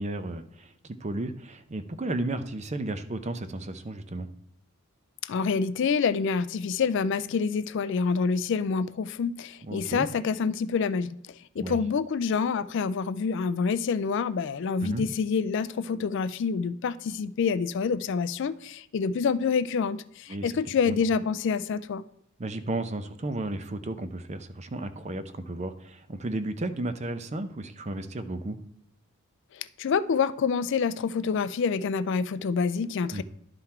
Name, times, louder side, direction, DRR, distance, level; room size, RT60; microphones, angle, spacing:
voice 1, 0.0-4.3 9.6-10.1 11.6-11.8 14.8-15.1 20.3-20.5 20.9-21.0 22.4-28.6 33.1-33.2, right 2 dB, 30° right, 0.6 m, -33 dB
voice 2, 5.2-22.0 29.5-33.2, left 5 dB, 55° left, 0.3 m, -27 dB
11.5 x 3.9 x 4.3 m
head